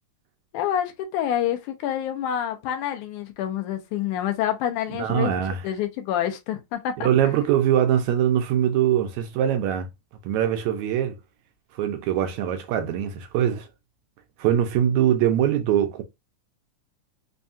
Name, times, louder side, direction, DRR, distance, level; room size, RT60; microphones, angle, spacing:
voice 1, 0.5-5.3 5.6-7.1, left 10 dB, 85° left, 2.2 m, -27 dB
voice 2, 5.0-5.6 7.0-9.9 10.2-11.2 11.7-13.7 14.4-16.0, right 10 dB, 80° right, 1.9 m, -22 dB
5.4 x 2.3 x 2.6 m
omnidirectional pair, 3.5 m